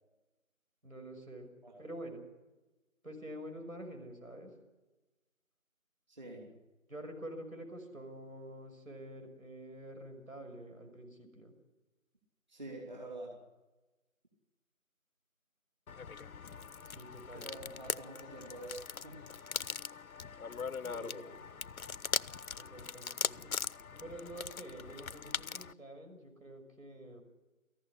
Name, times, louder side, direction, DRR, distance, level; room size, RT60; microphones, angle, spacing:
voice 1, 0.8-1.5 1.8-2.2 3.0-4.5 6.9-11.5 16.9-17.7 20.8-21.5 22.6-23.5 24.0-27.2, right 1 dB, 75° right, 4 dB, 6.1 m, -47 dB
voice 2, 6.1-6.5 12.5-13.4 17.3-19.5, right 1 dB, 35° right, -1 dB, 3.1 m, -47 dB
sound 1, 15.9-25.7, left 6 dB, 85° left, 0.7 m, -40 dB
18.0 x 14.5 x 9.9 m, 1.1 s
figure-of-eight pair, 175°, 42 cm